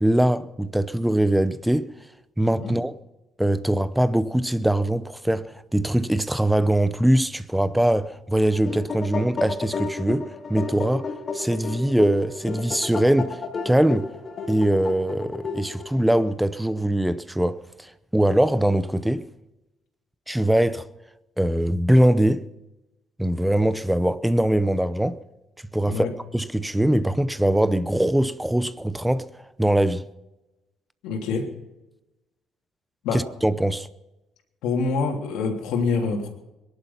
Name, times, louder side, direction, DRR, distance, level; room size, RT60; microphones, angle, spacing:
voice 1, 0.0-1.9 2.4-2.9 3.4-13.4 13.6-14.1 14.5-19.2 20.3-20.8 21.4-22.4 23.2-25.2 25.7-26.1 26.3-29.3 29.6-30.0 33.1-33.9, right 1 dB, 5° right, 0.6 m, -22 dB
sound 1, 8.4-16.0, left 4 dB, 30° left, 2.1 m, -32 dB
voice 2, 31.0-31.5 33.0-33.3 34.6-36.3, left 4 dB, 80° left, 3.2 m, -26 dB
21.5 x 11.5 x 5.7 m
cardioid pair, 155°, 0 cm